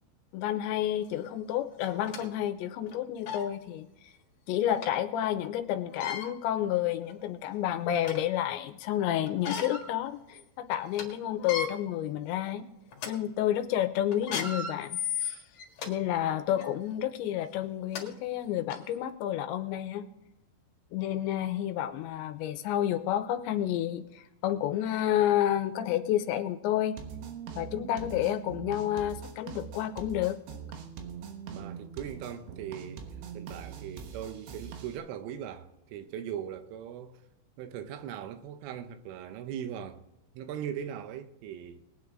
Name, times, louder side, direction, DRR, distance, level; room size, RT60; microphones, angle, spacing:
voice 1, 0.3-3.9 4.5-12.7 13.1-15.4 15.9-20.1 20.9-27.0 27.6-30.4, left 11 dB, 80° left, 2.8 m, -30 dB
sound 1, 1.1-1.2 1.8-2.3 2.9-3.0 3.2-3.5 4.8-4.9 5.8-6.3 7.0-7.1 7.6-8.3 9.3-9.9 10.3-10.4 10.8-11.0 11.4-11.7 12.3-12.5 12.9-13.1 14.1-15.9 16.5-16.7 17.6-17.7 17.9-18.0 18.7-18.8, left 6 dB, 55° left, 2.2 m, -35 dB
sound 2, 27.0-35.0, right 7 dB, 70° right, 3.4 m, -42 dB
voice 2, 31.5-33.1 33.4-37.2 37.6-40.0 40.4-41.8, right 9 dB, 85° right, 3.4 m, -39 dB
22.0 x 9.2 x 3.7 m
omnidirectional pair, 5.6 m